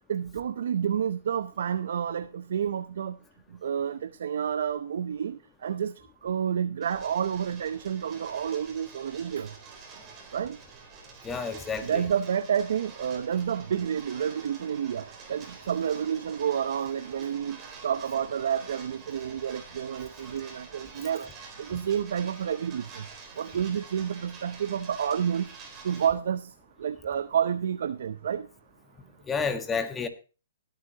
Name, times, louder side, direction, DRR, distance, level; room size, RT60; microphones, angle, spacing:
voice 1, 0.1-3.2 3.6-5.9 6.2-9.5 10.3-10.6 11.8-21.3 21.6-23.1 23.4-25.5 25.8-26.5 26.8-28.5, right 8 dB, 65° right, 0.6 m, -29 dB
sound 1, 6.8-26.1, right 4 dB, 20° right, 3.8 m, -48 dB
voice 2, 11.2-12.0 29.3-30.1, left 5 dB, 15° left, 1.3 m, -30 dB
20.0 x 8.6 x 2.8 m
hypercardioid pair, 145°, 0 cm